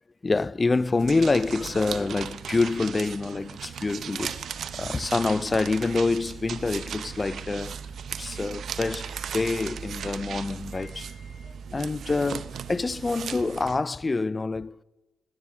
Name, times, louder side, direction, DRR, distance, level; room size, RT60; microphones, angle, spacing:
voice 1, 0.2-7.8 8.2-14.8, left 3 dB, 25° left, 0.3 m, -27 dB
sound 1, 1.0-13.8, right 7 dB, 65° right, 0.7 m, -37 dB
14.5 x 9.7 x 7.2 m
cardioid pair, 80°, 0 cm